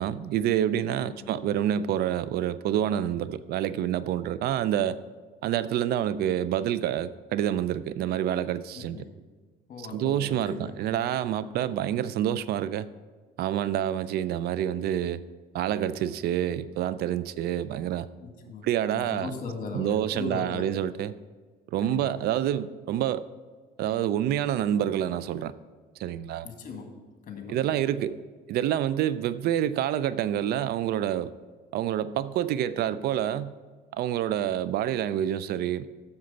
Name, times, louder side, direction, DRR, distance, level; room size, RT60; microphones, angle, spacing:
voice 1, 0.0-5.0 5.4-9.0 9.8-12.9 13.4-15.2 15.5-18.1 18.6-19.3 19.7-21.1 21.7-23.2 23.8-25.5 26.0-26.5 27.5-28.2 28.5-31.3 31.7-33.5 33.9-35.9, right 11 dB, 70° right, 0.4 m, -27 dB
voice 2, 8.7-9.1 9.7-10.8 18.2-18.7 18.9-20.7 21.8-22.3 26.4-27.0 27.3-27.6, left 4 dB, 50° left, 1.8 m, -38 dB
7.8 x 6.8 x 5.4 m
cardioid pair, 110°, 17 cm